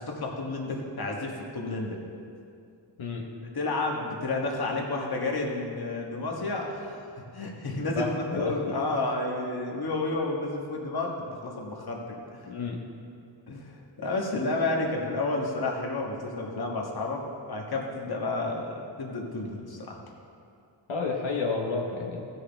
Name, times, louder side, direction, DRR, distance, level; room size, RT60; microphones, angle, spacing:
voice 1, 0.0-2.0 3.5-7.0 7.3-11.1 11.4-12.4 13.5-17.2 17.5-20.0, left 2 dB, 50° left, -1 dB, 1.5 m, -31 dB
voice 2, 7.9-8.6 12.5-12.8 20.9-22.3, left 3 dB, 80° left, -1 dB, 1.2 m, -30 dB
16.5 x 6.3 x 3.5 m, 2.5 s
wide cardioid pair, 115°, 47 cm